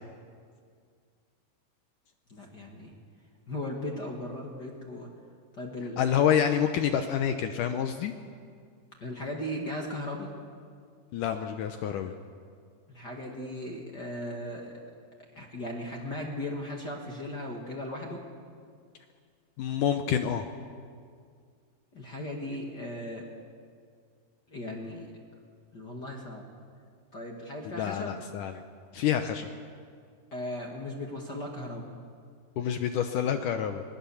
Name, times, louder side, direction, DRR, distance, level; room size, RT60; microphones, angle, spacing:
voice 1, 2.3-2.9 3.5-5.1 5.6-6.2 9.0-10.3 12.9-14.7 15.3-18.2 21.9-23.2 24.5-25.1 25.7-26.5 27.1-28.2 30.3-31.9, left 1 dB, 40° left, 0 dB, 1.7 m, -37 dB
voice 2, 6.0-8.1 11.1-12.1 19.6-20.5 27.7-28.6 28.9-29.5 32.6-33.8, left 9 dB, 80° left, 7 dB, 1.8 m, -27 dB
25.0 x 20.0 x 7.2 m, 2.1 s
omnidirectional pair, 4.8 m